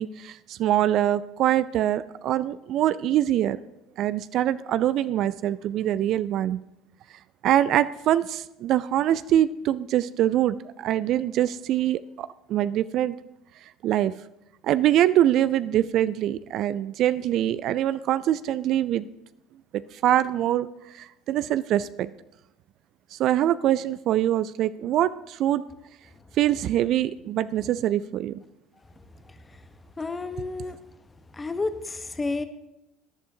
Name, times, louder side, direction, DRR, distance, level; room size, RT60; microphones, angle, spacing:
voice 1, 0.0-3.6 4.0-6.6 7.4-13.1 13.8-14.1 14.6-19.1 19.7-20.7 20.9-22.1 23.1-25.6 26.4-28.4, right 12 dB, 55° right, 16 dB, 0.3 m, -24 dB
voice 2, 29.2-29.7 30.0-30.8 31.3-32.4, left 3 dB, 20° left, 10 dB, 1.0 m, -31 dB
18.0 x 11.0 x 2.8 m, 0.89 s
figure-of-eight pair, 65°, 0 cm